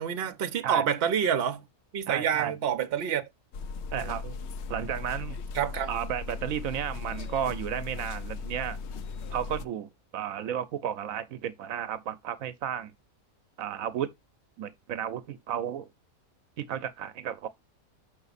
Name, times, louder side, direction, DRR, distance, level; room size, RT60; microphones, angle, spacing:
voice 1, 0.0-1.6 1.9-3.2 3.9-4.3 5.5-5.9, right 8 dB, 55° right, 0.9 m, -28 dB
voice 2, 2.1-2.5 3.9-4.2 4.7-5.4 5.9-8.8 9.3-12.9 13.6-14.1 14.6-15.9 16.6-17.5, right 9 dB, 75° right, 1.0 m, -33 dB
sound 1, 3.5-9.7, left 4 dB, 65° left, 0.7 m, -37 dB
5.9 x 5.7 x 4.0 m
omnidirectional pair, 1.5 m